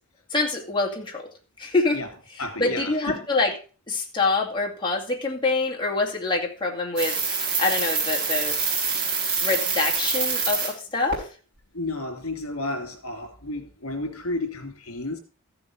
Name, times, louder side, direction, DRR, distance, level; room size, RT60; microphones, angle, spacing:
voice 1, 0.3-1.3 1.6-2.0 2.6-3.5 3.9-7.2 7.6-8.6 9.4-11.3, left 3 dB, 20° left, 2.4 m, -25 dB
voice 2, 2.4-3.3 11.7-15.2, left 2 dB, 80° left, 3.1 m, -32 dB
sound 1, 7.0-10.7 11.1-11.2, right 5 dB, 55° right, 4.6 m, -25 dB
14.5 x 7.1 x 5.1 m
head